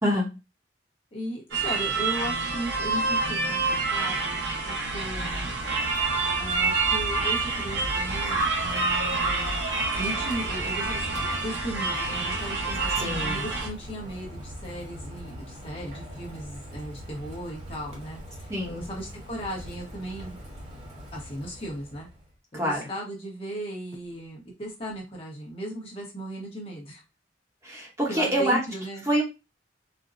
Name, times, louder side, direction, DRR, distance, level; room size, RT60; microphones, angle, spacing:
voice 1, 0.0-0.3 13.0-13.5 18.5-18.9 22.5-22.8 27.6-28.6 29.1-29.2, equal, 15° right, -3 dB, 0.9 m, -26 dB
voice 2, 1.1-5.5 6.4-9.6 9.9-20.4 21.1-22.1 22.5-27.0 28.1-29.0, right 1 dB, 30° left, -2 dB, 1.0 m, -37 dB
sound 1, 1.5-13.7, right 3 dB, 75° right, 1.0 m, -27 dB
Rain, 5.0-22.3, equal, 35° right, 1.1 m, -42 dB
4.3 x 2.2 x 2.5 m, 0.25 s
head